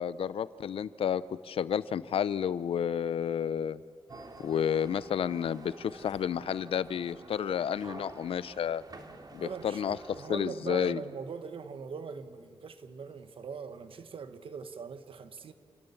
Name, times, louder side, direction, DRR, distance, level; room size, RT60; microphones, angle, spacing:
voice 1, 0.0-3.8 4.4-8.8 9.3-11.0, left 8 dB, 85° left, 17 dB, 0.6 m, -31 dB
sound 1, 4.1-10.3, right 2 dB, 45° right, 2.4 m, -49 dB
voice 2, 9.4-15.5, right 6 dB, 75° right, 9 dB, 1.4 m, -41 dB
28.5 x 18.0 x 7.2 m, 2.1 s
cardioid pair, 75°, 9 cm